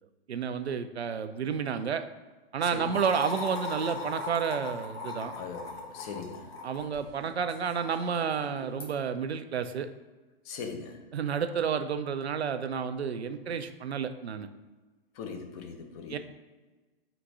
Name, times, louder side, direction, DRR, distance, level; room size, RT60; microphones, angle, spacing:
voice 1, 0.3-2.0 2.5-5.3 6.6-9.9 11.1-14.5 16.1-16.2, right 7 dB, 90° right, 9 dB, 0.5 m, -31 dB
sound 1, 2.9-9.0, left 4 dB, 70° left, 1.1 m, -40 dB
voice 2, 5.4-6.4 10.5-11.0 15.2-16.2, left 5 dB, 35° left, 5 dB, 0.7 m, -40 dB
3.8 x 2.6 x 4.6 m, 1.2 s
figure-of-eight pair, 115°, 31 cm